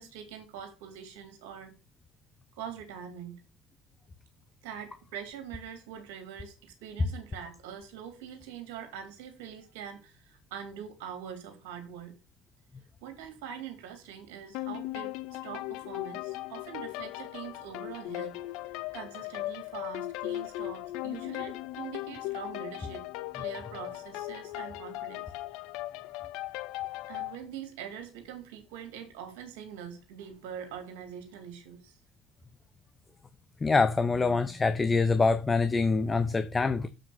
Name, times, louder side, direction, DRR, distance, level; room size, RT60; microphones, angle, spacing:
voice 1, 0.0-1.7 2.5-3.4 4.6-12.2 13.0-18.4 18.9-23.1 23.3-25.3 27.1-32.0, right 8 dB, 70° right, 2.7 m, -43 dB
sound 1, 14.5-27.4, left 16 dB, 65° left, 0.5 m, -38 dB
voice 2, 33.6-36.9, left 4 dB, 25° left, 0.9 m, -25 dB
7.2 x 5.9 x 6.2 m
figure-of-eight pair, 55°, 0 cm